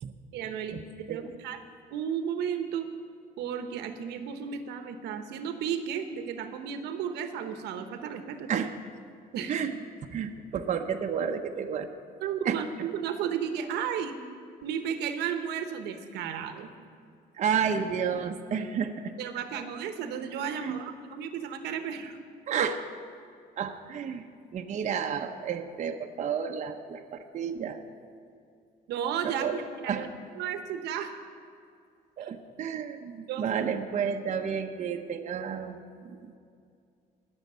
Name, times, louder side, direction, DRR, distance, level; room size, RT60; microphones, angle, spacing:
voice 1, 0.3-1.6 1.9-2.9 3.4-8.5 9.3-9.5 12.2-14.2 14.6-16.7 19.2-22.2 28.9-30.1 30.4-31.1 32.2-32.3 32.7-32.8 33.3-33.4, right 8 dB, 80° right, 8 dB, 1.0 m, -33 dB
voice 2, 10.1-11.9 12.4-12.9 17.3-19.1 20.5-20.8 22.5-22.9 23.6-24.3 24.5-27.8 29.2-29.6 29.9-30.1 32.2-36.4, right 7 dB, 45° right, 4 dB, 0.8 m, -31 dB
19.5 x 7.2 x 5.5 m, 2.4 s
cardioid pair, 110°, 17 cm